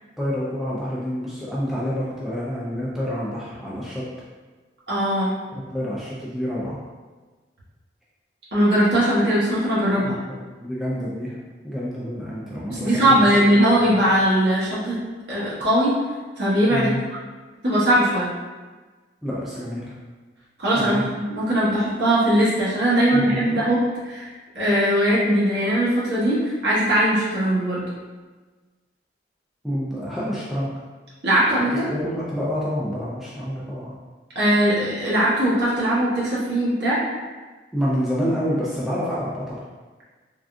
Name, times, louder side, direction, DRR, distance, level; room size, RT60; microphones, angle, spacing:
voice 1, 0.2-4.1 5.5-6.8 10.0-10.4 10.6-11.4 11.6-13.3 13.9-14.0 16.7-17.0 19.2-20.0 20.7-21.1 23.1-23.6 29.6-30.7 31.8-33.9 37.7-39.7, equal, ahead, -8 dB, 0.4 m, -28 dB
voice 2, 4.9-5.3 8.5-10.2 12.7-15.0 15.3-15.9 16.4-16.9 17.6-18.3 20.6-23.8 24.0-24.3 24.5-27.8 31.2-31.9 34.3-37.0, right 1 dB, 65° right, -8 dB, 1.1 m, -20 dB
3.6 x 2.3 x 2.4 m, 1.3 s
head